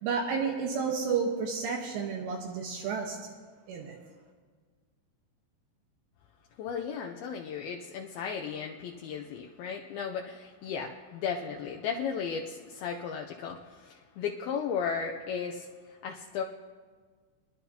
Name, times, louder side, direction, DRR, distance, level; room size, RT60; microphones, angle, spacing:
voice 1, 0.0-3.2 3.7-4.0, right 5 dB, 75° right, 0 dB, 3.3 m, -31 dB
voice 2, 6.6-16.4, left 6 dB, 85° left, 1 dB, 2.2 m, -35 dB
25.0 x 11.5 x 2.8 m, 1.5 s
omnidirectional pair, 5.2 m